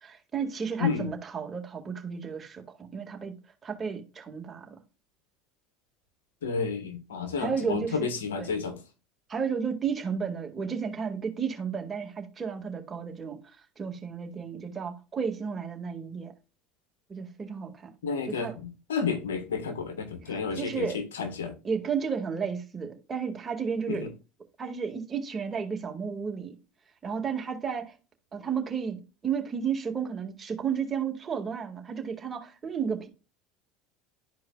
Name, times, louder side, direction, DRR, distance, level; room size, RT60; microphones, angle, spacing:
voice 1, 0.0-3.3 3.6-4.8 7.4-8.1 8.4-8.5 9.3-13.4 13.8-16.3 17.1-17.9 18.2-18.5 20.2-21.0 21.6-24.1 24.6-26.6 27.0-27.9 28.3-33.1, right 6 dB, 30° right, 1.9 m, -33 dB
voice 2, 6.4-8.8 18.0-18.5 18.9-20.9 21.2-21.5 23.9-24.1, left 5 dB, 85° left, 1.4 m, -31 dB
12.5 x 4.7 x 2.3 m
hypercardioid pair, 80°, 0 cm